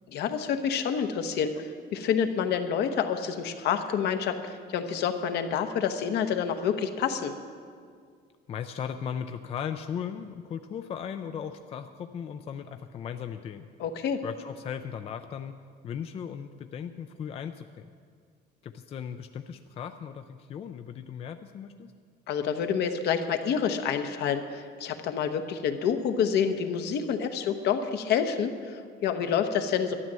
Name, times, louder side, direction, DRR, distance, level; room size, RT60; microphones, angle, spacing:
voice 1, 0.1-7.3 13.8-14.2 22.3-30.0, left 7 dB, 65° left, 7 dB, 1.0 m, -28 dB
voice 2, 8.5-13.7 14.2-15.6 15.8-17.9 18.6-21.9, left 8 dB, 35° left, 8 dB, 0.4 m, -37 dB
12.5 x 10.5 x 7.5 m, 2.1 s
cardioid pair, 170°, 18 cm